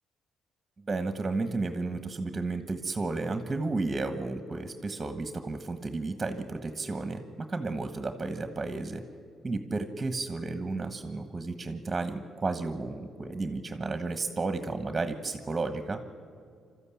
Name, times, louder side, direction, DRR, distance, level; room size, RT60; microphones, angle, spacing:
voice 1, 0.9-9.0 9.4-16.0, right 3 dB, 25° right, 8 dB, 1.4 m, -32 dB
25.0 x 13.5 x 8.6 m, 2.2 s
cardioid pair, 90°, 0 cm